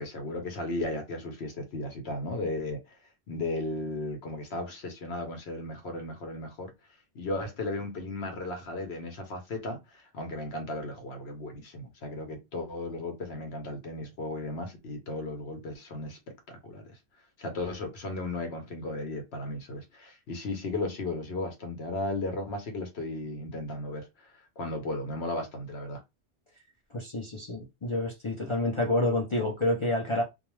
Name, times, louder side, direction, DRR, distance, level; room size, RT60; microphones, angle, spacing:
voice 1, 0.0-3.0 3.3-6.7 7.1-16.2 16.5-17.0 17.4-26.0, left 2 dB, 65° left, 0.9 m, -35 dB
voice 2, 26.9-30.2, left 1 dB, 45° left, 0.4 m, -28 dB
2.3 x 2.2 x 3.0 m
omnidirectional pair, 1.2 m